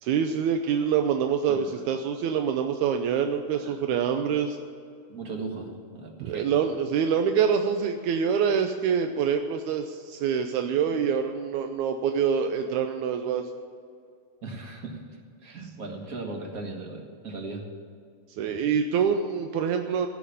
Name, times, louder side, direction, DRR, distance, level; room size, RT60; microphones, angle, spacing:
voice 1, 0.0-4.6 6.2-13.5 18.4-20.1, right 7 dB, 80° right, 6 dB, 1.7 m, -25 dB
voice 2, 5.1-6.6 14.4-17.7, right 3 dB, 50° right, 2 dB, 1.1 m, -38 dB
16.5 x 6.2 x 9.9 m, 2.3 s
omnidirectional pair, 4.1 m